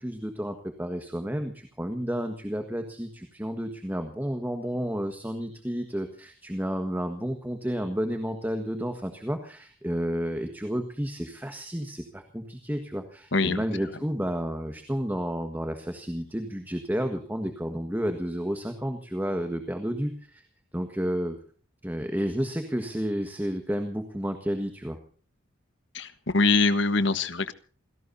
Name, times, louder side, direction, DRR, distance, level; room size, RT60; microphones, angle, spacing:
voice 1, 0.0-20.4 20.7-21.4 21.8-25.0, equal, 10° right, 6 dB, 1.5 m, -31 dB
voice 2, 13.3-13.6 25.9-27.5, left 3 dB, 60° left, 13 dB, 1.3 m, -23 dB
28.0 x 17.0 x 2.7 m, 0.42 s
head